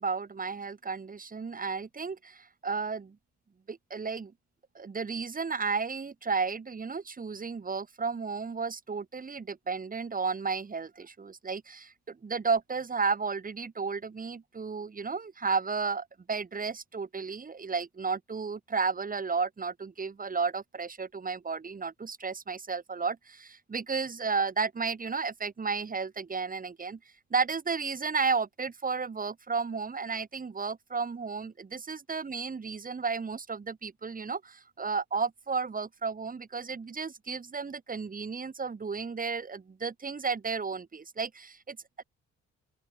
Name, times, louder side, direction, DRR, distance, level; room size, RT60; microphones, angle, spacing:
voice 1, 0.0-3.2 3.7-4.3 4.7-27.0 27.3-42.0, right 5 dB, 30° right, 1.7 m, -33 dB
open air
cardioid pair, 90°, 30 cm